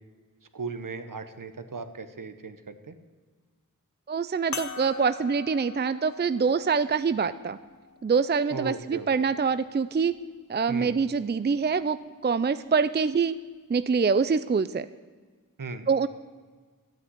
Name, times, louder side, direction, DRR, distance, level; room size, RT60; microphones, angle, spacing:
voice 1, 0.5-3.0 8.5-9.1 10.7-11.0 15.6-15.9, right 4 dB, 70° right, 10 dB, 1.2 m, -37 dB
voice 2, 4.1-7.6 8.0-10.1 10.5-13.3 13.7-14.9 15.9-16.1, right 5 dB, 30° right, 14 dB, 0.4 m, -25 dB
sound 1, 4.5-9.3 10.1-10.2 12.3-12.5, left 5 dB, 55° left, 0.8 m, -42 dB
12.5 x 9.3 x 9.6 m, 1.4 s
wide cardioid pair, 55°, 34 cm